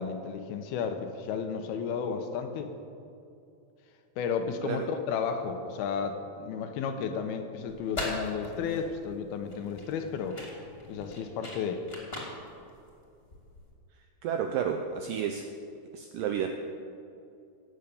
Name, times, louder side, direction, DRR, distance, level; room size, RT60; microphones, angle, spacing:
voice 1, 0.0-2.7 4.2-10.4 10.9-11.8, left 6 dB, 75° left, 7 dB, 2.8 m, -33 dB
sound 1, 7.7-13.7, left 2 dB, 15° left, 2.3 m, -40 dB
voice 2, 14.2-15.5 15.9-16.5, right 8 dB, 80° right, 5 dB, 2.0 m, -31 dB
17.0 x 8.2 x 6.9 m, 2.6 s
omnidirectional pair, 4.7 m